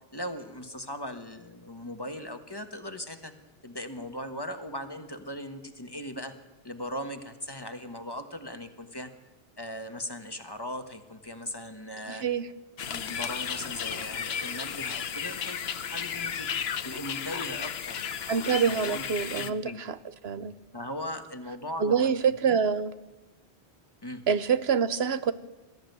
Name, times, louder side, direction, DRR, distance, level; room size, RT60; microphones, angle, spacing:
voice 1, 0.1-3.3 3.6-6.3 6.6-9.1 9.6-12.2 12.9-18.0 18.6-19.1 19.3-19.8 20.7-22.6 24.0-24.2, left 1 dB, 25° left, 7 dB, 1.5 m, -39 dB
voice 2, 12.1-12.5 18.3-19.9 20.2-20.5 21.8-22.9 24.3-25.3, right 6 dB, 85° right, 14 dB, 1.1 m, -26 dB
sound 1, 12.8-19.5, left 7 dB, 80° left, 1.1 m, -34 dB
21.0 x 13.5 x 9.3 m, 1.1 s
omnidirectional pair, 1.0 m